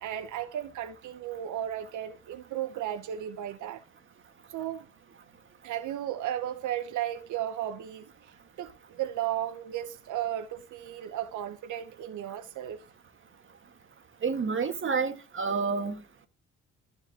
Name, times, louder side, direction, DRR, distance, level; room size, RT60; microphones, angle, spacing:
voice 1, 0.0-3.8 4.5-4.9 5.6-12.8, right 11 dB, 75° right, 0.9 m, -35 dB
voice 2, 14.2-16.0, right 5 dB, 40° right, 1.8 m, -29 dB
14.0 x 4.7 x 2.9 m
cardioid pair, 90°, 30 cm